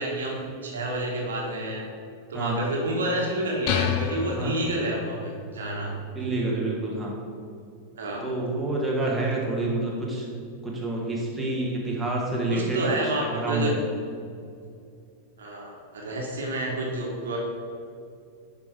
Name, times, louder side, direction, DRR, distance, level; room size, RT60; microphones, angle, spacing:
voice 1, 0.0-1.8 2.3-5.9 8.0-8.2 12.5-13.7 15.4-17.4, right 1 dB, 65° right, -2 dB, 1.5 m, -29 dB
sound 1, 3.7-5.3, left 7 dB, 45° left, 0.6 m, -28 dB
voice 2, 6.1-7.2 8.2-10.3 10.6-12.8 13.3-13.8, right 2 dB, 5° right, -5 dB, 1.8 m, -28 dB
10.5 x 5.1 x 3.6 m, 2.4 s
figure-of-eight pair, 90°, 0 cm